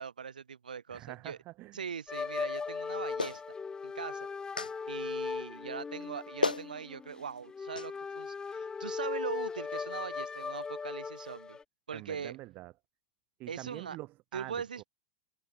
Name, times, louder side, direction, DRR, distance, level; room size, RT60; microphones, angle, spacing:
voice 1, 0.0-1.4 1.7-3.4 3.8-4.3 4.9-11.6 11.9-12.4 13.5-14.0 14.3-14.9, right 6 dB, 80° right, 7.8 m, -41 dB
voice 2, 0.9-1.8 11.9-12.7 13.4-14.8, right 18 dB, 40° right, 2.0 m, -45 dB
sound 1, 2.1-11.6, left 5 dB, 15° left, 5.2 m, -38 dB
Clapping, 3.2-3.4 4.6-4.7 6.0-6.1 6.4-6.7 7.7-7.9, left 3 dB, 90° left, 1.1 m, -31 dB
figure-of-eight pair, 90°, 4 cm